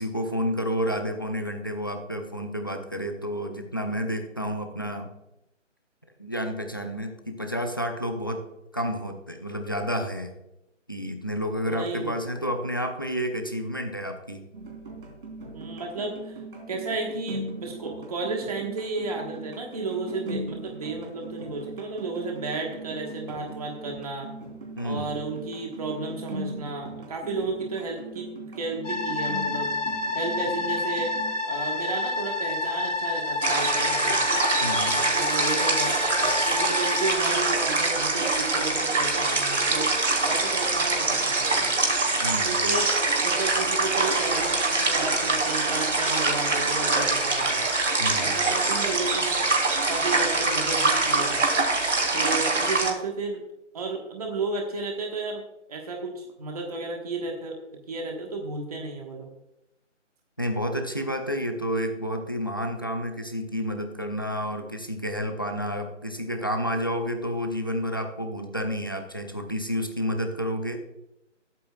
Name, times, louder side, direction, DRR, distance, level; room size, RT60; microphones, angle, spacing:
voice 1, 0.0-5.1 6.2-8.5 8.7-10.3 10.9-14.4 24.8-25.1 34.6-35.0 42.2-42.8 48.0-48.4 60.4-70.8, equal, 20° left, 6 dB, 0.6 m, -30 dB
voice 2, 11.7-12.1 15.5-16.4 16.7-24.3 24.8-28.3 28.6-29.7 30.1-31.1 31.5-34.2 34.9-39.9 40.2-41.7 42.4-42.9 43.2-47.7 48.2-49.4 49.9-51.4 52.1-53.4 53.7-55.4 55.7-57.6 57.9-59.3, right 3 dB, 30° right, 1 dB, 1.4 m, -33 dB
sound 1, 14.5-31.3, right 2 dB, 45° right, 3.4 m, -39 dB
sound 2, 28.8-37.1, left 2 dB, 75° left, 2.1 m, -29 dB
sound 3, 33.4-52.9, right 3 dB, 75° right, 3.3 m, -24 dB
20.5 x 8.4 x 2.3 m, 0.88 s
hypercardioid pair, 165°, 37 cm